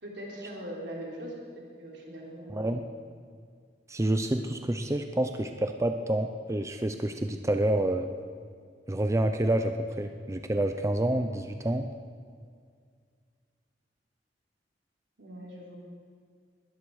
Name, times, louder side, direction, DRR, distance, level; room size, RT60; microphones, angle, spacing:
voice 1, 0.0-2.6 15.2-15.8, right 1 dB, 80° right, -2 dB, 3.8 m, -41 dB
voice 2, 2.5-2.9 3.9-8.1 8.9-11.9, right 1 dB, 15° right, 6 dB, 0.6 m, -28 dB
20.5 x 13.0 x 4.9 m, 2.1 s
head